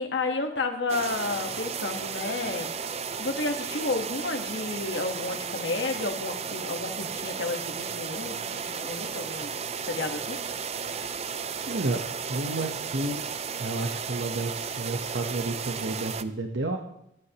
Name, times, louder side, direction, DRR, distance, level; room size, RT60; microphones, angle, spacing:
voice 1, 0.0-2.7 3.2-9.5 9.9-10.4, left 3 dB, 70° left, 3 dB, 1.4 m, -31 dB
sound 1, 0.9-16.2, right 6 dB, 35° right, 0.5 m, -34 dB
voice 2, 11.7-12.0 12.3-13.2 13.6-16.8, right 2 dB, 70° right, 3 dB, 1.1 m, -31 dB
26.5 x 9.8 x 3.0 m, 0.79 s
head